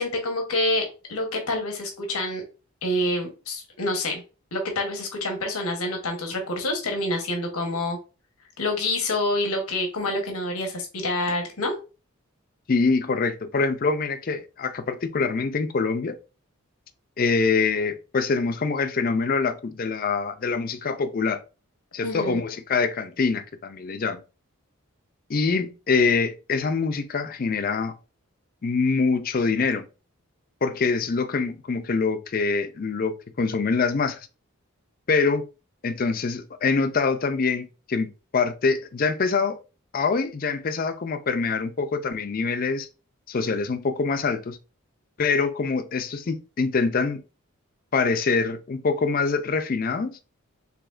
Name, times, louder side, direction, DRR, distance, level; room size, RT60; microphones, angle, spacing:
voice 1, 0.0-2.4 2.8-4.2 4.5-8.0 8.6-11.7 22.0-22.4, left 1 dB, 85° left, 1.1 m, -27 dB
voice 2, 12.7-16.2 17.2-21.4 21.9-24.2 25.3-27.9 28.6-29.9 30.6-34.2 35.1-35.5 35.8-39.6 39.9-42.9 43.3-44.6 45.2-47.2 47.9-50.2, left 4 dB, 40° left, 0.4 m, -24 dB
4.8 x 3.5 x 2.5 m
head